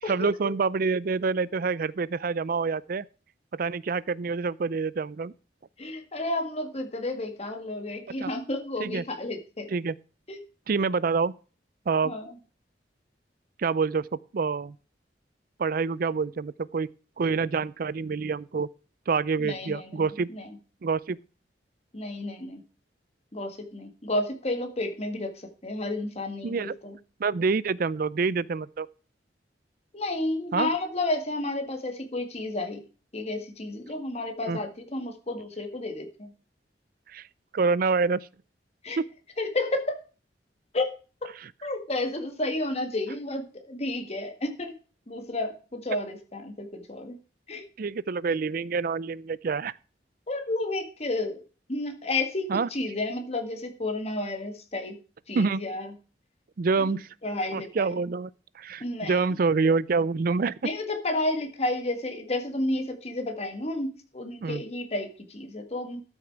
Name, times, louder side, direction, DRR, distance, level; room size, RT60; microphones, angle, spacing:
voice 1, 0.1-3.0 3.5-5.3 8.2-8.3 8.8-9.0 9.7-9.9 10.7-11.3 11.9-12.1 13.6-14.1 14.3-14.8 15.6-16.9 17.2-18.7 19.1-20.3 20.8-21.2 26.4-26.7 27.2-28.9 30.5-30.7 34.5-34.6 37.1-37.3 37.5-38.3 39.0-39.1 41.4-41.5 47.8-49.7 52.5-52.7 55.3-55.6 56.6-57.1 57.5-58.3 58.6-60.6 64.4-64.6, right 4 dB, 55° right, 0.4 m, -27 dB
voice 2, 5.8-9.7 10.3-10.4 12.0-12.3 19.4-20.0 20.3-20.5 21.9-22.6 23.3-25.3 25.6-26.9 29.9-32.8 33.1-36.3 38.8-39.0 39.4-40.0 40.7-41.0 41.2-41.3 41.6-44.7 45.1-47.1 47.5-47.6 50.3-51.4 51.7-55.0 55.3-55.9 56.9-57.0 57.2-58.0 58.8-59.2 60.6-66.0, left 2 dB, 35° left, 1.8 m, -31 dB
12.5 x 6.3 x 4.7 m
head